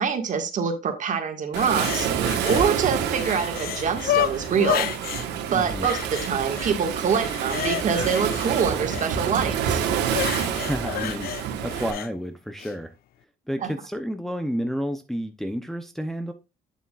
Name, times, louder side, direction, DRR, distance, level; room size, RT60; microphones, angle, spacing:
voice 1, 0.0-2.1 2.4-4.9 5.5-9.8, right 6 dB, 50° right, 1.8 m, -25 dB
Waves surf, 1.5-11.9, right 8 dB, 90° right, 1.5 m, -28 dB
sound 1, 1.6-2.7 3.0-5.3 5.8-6.7 7.1-9.1 10.1-12.1 12.6-12.7, left 12 dB, 65° left, 0.5 m, -30 dB
voice 2, 5.5-5.9 10.4-12.9 13.5-16.3, equal, ahead, 0.7 m, -31 dB
8.5 x 7.2 x 2.4 m
cardioid pair, 110°, 17 cm